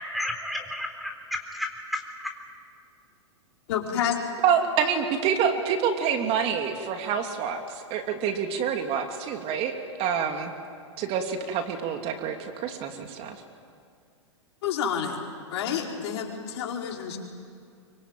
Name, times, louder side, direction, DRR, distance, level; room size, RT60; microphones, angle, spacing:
voice 1, 0.0-2.0, left 1 dB, ahead, 4 dB, 3.7 m, -32 dB
voice 2, 3.7-4.2 14.6-15.2 15.5-17.2, left 8 dB, 60° left, 0 dB, 4.8 m, -29 dB
voice 3, 4.4-7.6 7.9-9.7 10.0-10.5 11.0-13.4, right 7 dB, 40° right, 5 dB, 2.9 m, -27 dB
25.5 x 24.5 x 9.2 m, 2.3 s
hypercardioid pair, 120°, 16 cm